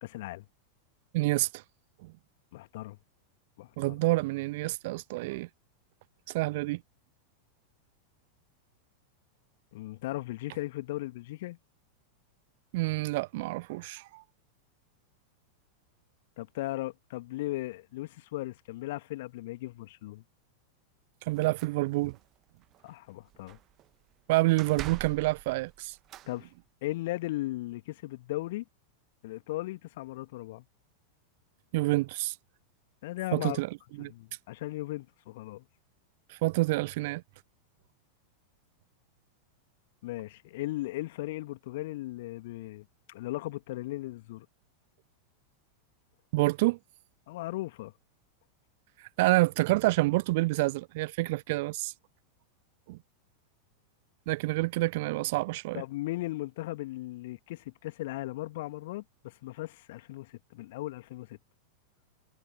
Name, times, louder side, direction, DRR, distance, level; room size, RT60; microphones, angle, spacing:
voice 1, 0.0-0.5 2.5-3.0 3.6-4.0 9.7-11.6 16.4-20.2 22.8-23.6 26.3-26.5 26.8-28.6 29.2-30.6 33.0-33.6 34.0-35.6 40.0-44.5 47.3-47.9 55.7-61.4, left 18 dB, 50° left, 2.1 m, -37 dB
voice 2, 1.1-1.5 3.8-5.5 6.3-6.8 12.7-14.2 21.3-22.2 24.3-25.9 31.7-32.3 33.3-33.7 34.0-34.1 36.3-37.2 46.3-46.8 49.2-51.9 52.9-53.0 54.3-55.8, right 21 dB, 50° right, 0.4 m, -28 dB
sound 1, 21.3-22.2 22.6-22.9 23.2-23.9 24.6-26.3, right 14 dB, 35° right, 1.5 m, -44 dB
figure-of-eight pair, 90°, 0 cm